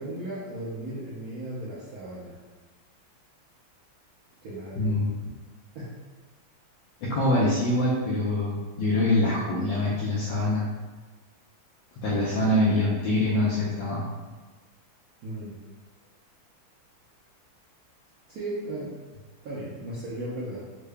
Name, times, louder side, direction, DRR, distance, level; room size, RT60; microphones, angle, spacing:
voice 1, 0.0-2.4 4.4-4.9 5.7-6.0 15.2-15.6 18.3-19.0 19.4-20.6, right 1 dB, 65° right, -7 dB, 0.9 m, -36 dB
voice 2, 4.8-5.2 7.0-10.7 12.0-14.0, left 1 dB, 70° left, -7 dB, 1.2 m, -24 dB
3.7 x 2.1 x 3.4 m, 1.3 s
omnidirectional pair, 2.2 m